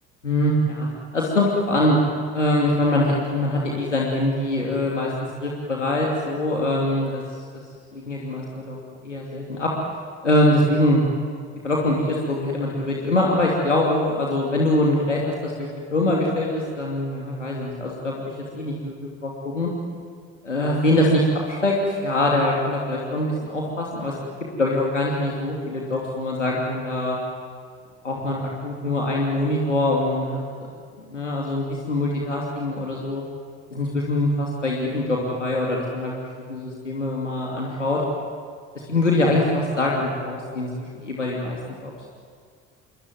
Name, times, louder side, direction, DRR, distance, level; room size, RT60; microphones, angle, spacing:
voice 1, 0.2-0.9 1.1-2.0 2.3-5.1 5.4-7.2 7.9-8.8 9.0-9.7 10.2-11.0 11.6-19.7 20.4-24.1 24.6-27.2 28.0-30.7 31.1-33.2 33.7-36.1 36.5-38.0 38.7-41.9, left 1 dB, 85° left, -2 dB, 2.8 m, -23 dB
26.5 x 23.5 x 9.3 m, 2.1 s
figure-of-eight pair, 55°, 36 cm